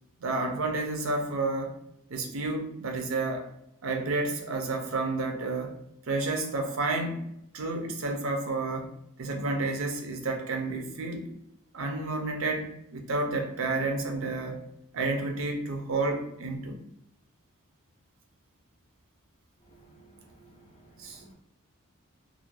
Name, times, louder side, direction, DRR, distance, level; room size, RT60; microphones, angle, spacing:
voice 1, 0.2-1.8 2.1-3.4 3.8-5.7 6.1-7.2 7.5-8.9 9.2-11.3 11.7-14.6 14.9-16.8 21.0-21.2, right 3 dB, 65° right, 3 dB, 0.5 m, -30 dB
voice 2, 19.6-21.4, right 2 dB, 30° left, 1 dB, 0.5 m, -56 dB
2.4 x 2.1 x 3.1 m, 0.79 s
head